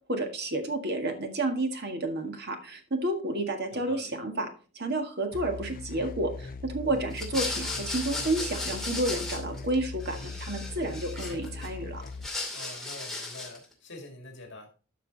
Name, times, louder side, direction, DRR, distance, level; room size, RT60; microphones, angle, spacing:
voice 1, 0.1-4.5 4.8-12.0, right 2 dB, 50° right, 5 dB, 1.8 m, -31 dB
voice 2, 3.7-4.1 12.5-14.7, left 2 dB, 60° left, 3 dB, 2.1 m, -45 dB
sound 1, 5.3-12.3, left 3 dB, 45° left, 0.5 m, -40 dB
sound 2, 7.1-9.7 10.0-11.7 12.0-13.6, left 2 dB, ahead, 2.5 m, -36 dB
12.5 x 6.0 x 4.0 m, 0.37 s
head